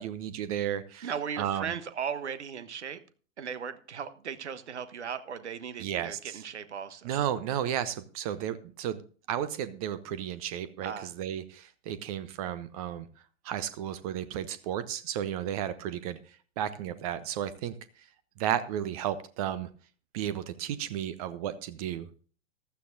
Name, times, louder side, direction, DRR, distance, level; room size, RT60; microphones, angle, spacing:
voice 1, 0.0-1.1 1.4-1.7 5.8-6.4 7.0-9.0 9.3-10.9 11.2-13.1 13.4-16.2 16.6-17.7 18.4-19.7 20.1-22.1, right 10 dB, 30° right, 15 dB, 0.7 m, -33 dB
voice 2, 1.0-3.0 3.4-7.1 10.8-11.1, right 7 dB, 65° right, 13 dB, 1.3 m, -37 dB
15.0 x 12.5 x 2.6 m, 0.40 s
figure-of-eight pair, 105°, 38 cm